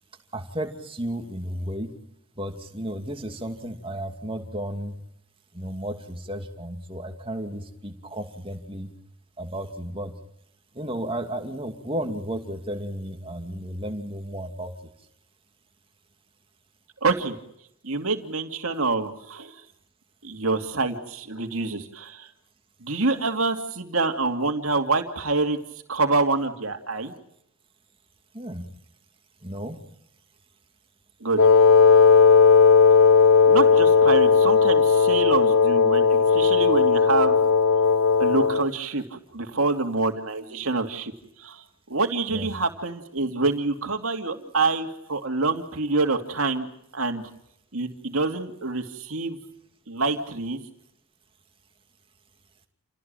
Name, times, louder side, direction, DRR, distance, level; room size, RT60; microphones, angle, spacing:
voice 1, 0.3-1.9 2.4-5.0 5.5-8.9 9.4-10.2 10.7-14.7 28.3-28.7 29.4-29.8 40.5-40.6 42.3-42.5 43.2-43.3 44.3-44.5, right 1 dB, 25° right, 5 dB, 2.7 m, -33 dB
voice 2, 17.0-17.4 17.8-19.5 20.2-22.3 22.8-25.6 25.9-27.1 31.2-31.4 33.5-37.3 38.2-41.1 41.4-41.6 41.9-46.7 46.9-47.3 47.7-49.4 49.9-50.6, right 3 dB, 75° right, 4 dB, 2.7 m, -26 dB
Wind instrument woodwind instrument, 31.4-38.7, left 5 dB, 70° left, 1.1 m, -16 dB
29.0 x 17.5 x 9.0 m, 0.76 s
head